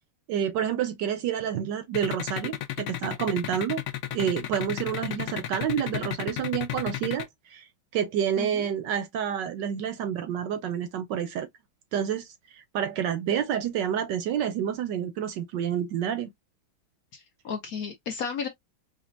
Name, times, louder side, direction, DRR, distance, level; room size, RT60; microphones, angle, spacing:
voice 1, 0.3-3.8 4.1-7.7 7.9-11.5 11.9-16.3, right 9 dB, 75° right, 1.1 m, -29 dB
sound 1, 1.9-7.2, left 12 dB, 85° left, 0.7 m, -32 dB
voice 2, 17.1-18.5, left 6 dB, 60° left, 1.0 m, -34 dB
5.1 x 2.4 x 2.5 m
omnidirectional pair, 2.2 m